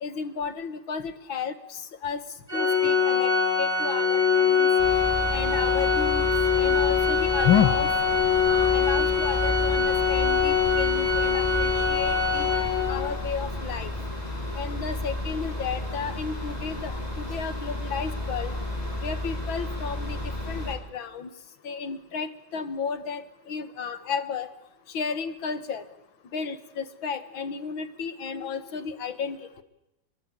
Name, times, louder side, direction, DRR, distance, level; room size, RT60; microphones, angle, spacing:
voice 1, 0.0-2.2 2.5-3.3 3.6-4.7 5.3-7.9 8.5-12.5 12.9-13.9 14.6-18.6 19.0-20.2 20.5-21.3 21.6-24.5 24.9-25.8 26.3-29.4, left 7 dB, 85° left, 10 dB, 2.4 m, -32 dB
Organ, 2.5-13.2, left 5 dB, 20° right, 7.0 m, -23 dB
sound 1, 4.8-20.7, left 1 dB, 20° left, 6.4 m, -32 dB
28.0 x 23.0 x 8.4 m, 0.90 s
omnidirectional pair, 2.1 m